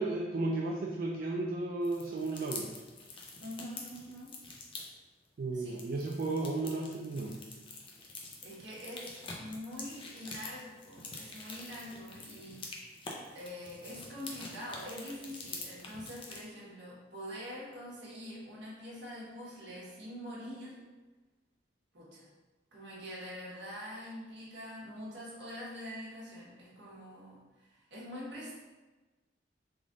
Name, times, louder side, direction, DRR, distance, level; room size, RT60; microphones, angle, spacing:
voice 1, 0.0-2.8 5.4-7.4, right 2 dB, 55° right, -2 dB, 0.3 m, -34 dB
sound 1, 1.8-4.9 5.6-16.4, left 3 dB, 30° left, 0.5 m, -46 dB
voice 2, 3.4-4.4 5.5-5.8 8.4-12.9 13.3-20.8 21.9-22.3 22.7-28.5, equal, 80° right, -6 dB, 1.2 m, -45 dB
3.5 x 2.4 x 3.7 m, 1.2 s
head